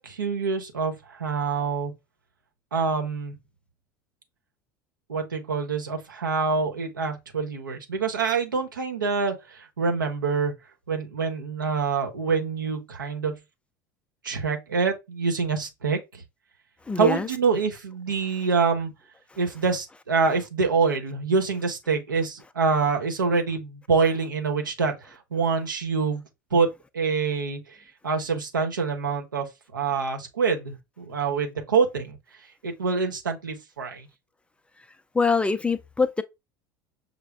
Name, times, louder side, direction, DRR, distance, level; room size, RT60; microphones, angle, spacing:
voice 1, 0.0-1.9 2.7-3.3 5.1-10.5 10.9-13.3 14.2-16.2 17.0-18.9 19.4-26.2 26.5-26.7 26.9-27.8 28.0-32.2 32.6-34.1, right 5 dB, 75° right, 1.0 m, -26 dB
voice 2, 16.9-17.3 35.1-36.2, left 4 dB, 10° left, 0.4 m, -24 dB
6.5 x 2.2 x 3.4 m
figure-of-eight pair, 70°, 11 cm